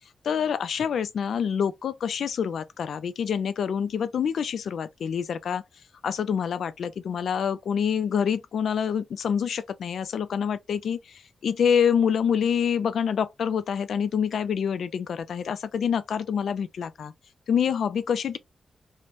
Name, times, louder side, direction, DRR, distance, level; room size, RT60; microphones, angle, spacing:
voice 1, 0.2-5.6 6.0-17.1 17.5-18.4, left 7 dB, 85° left, 0.3 m, -26 dB
3.0 x 2.1 x 2.5 m
cardioid pair, 80°, 0 cm